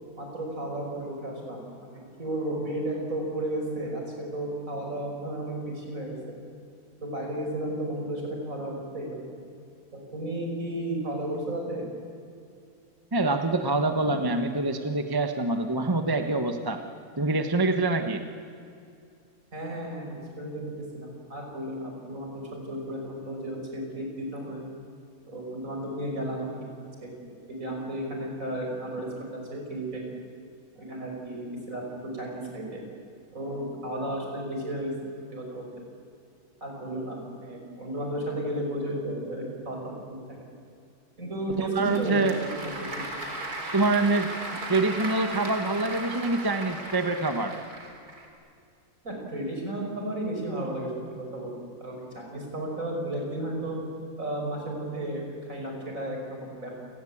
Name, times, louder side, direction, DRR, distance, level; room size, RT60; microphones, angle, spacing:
voice 1, 0.2-4.0 4.3-6.3 7.0-9.3 9.9-11.9 19.5-24.6 25.3-26.5 27.0-30.0 30.7-32.8 33.3-34.9 35.3-35.7 36.6-40.4 41.2-42.5 43.0-43.1 49.0-51.5 51.8-53.8 54.2-56.8, right 1 dB, 60° right, 0 dB, 6.3 m, -33 dB
voice 2, 13.1-16.8 17.2-18.2 41.6-42.4 43.7-44.3 44.7-47.5, right 2 dB, 15° right, 6 dB, 1.2 m, -25 dB
Applause / Crowd, 41.5-48.3, right 2 dB, 90° right, 4.0 m, -36 dB
28.5 x 19.5 x 8.7 m, 2.4 s
omnidirectional pair, 1.6 m